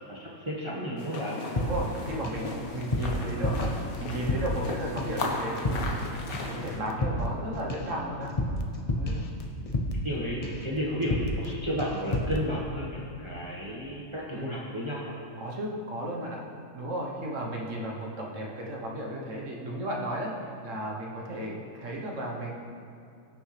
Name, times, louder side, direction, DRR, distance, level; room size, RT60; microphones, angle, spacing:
voice 1, 0.0-1.4 9.1-9.3 10.0-15.2, equal, 20° right, -5 dB, 1.2 m, -33 dB
sound 1, 1.0-6.8, left 3 dB, 90° left, 1.6 m, -37 dB
voice 2, 1.5-3.7 4.0-6.2 6.4-8.3 8.9-9.2 14.3-14.6 15.4-16.4 16.7-22.5, right 1 dB, 65° right, -1 dB, 1.4 m, -34 dB
sound 2, 1.6-2.5 2.7-4.7 5.0-5.3 5.6-6.1 6.3-10.1 10.4-10.7 11.0-11.5 11.8-12.4, left 1 dB, 35° left, 0.6 m, -31 dB
16.5 x 6.5 x 3.3 m, 2.4 s
omnidirectional pair, 1.5 m